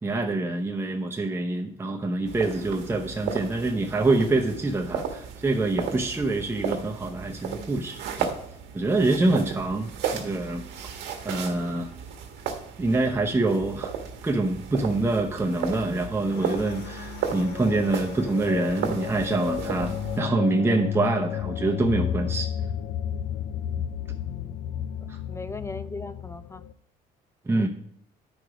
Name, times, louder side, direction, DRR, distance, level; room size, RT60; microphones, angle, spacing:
voice 1, 0.0-8.3 8.7-10.6 11.2-11.9 12.8-13.9 14.2-22.5 25.1-25.2 27.4-27.7, right 2 dB, 15° right, 1 dB, 0.9 m, -25 dB
sound 1, 2.2-20.2, right 7 dB, 90° right, 1.5 m, -35 dB
sound 2, 16.3-26.7, left 10 dB, 75° left, 0.5 m, -32 dB
voice 2, 24.2-24.6 25.2-26.6 27.5-27.7, left 3 dB, 15° left, 13 dB, 0.4 m, -38 dB
10.5 x 4.8 x 5.0 m, 0.69 s
cardioid pair, 110°, 17 cm